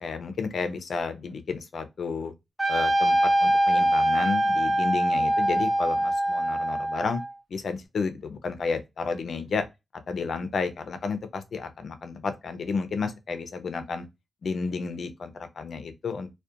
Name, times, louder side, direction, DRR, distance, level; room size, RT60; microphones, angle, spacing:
voice 1, 0.0-2.3 2.7-7.2 7.5-9.7 10.1-14.1 14.4-16.3, left 4 dB, 75° left, 0.4 m, -31 dB
Trumpet, 2.6-7.3, right 1 dB, 20° right, 0.8 m, -23 dB
2.4 x 2.1 x 2.6 m
wide cardioid pair, 85°, 0 cm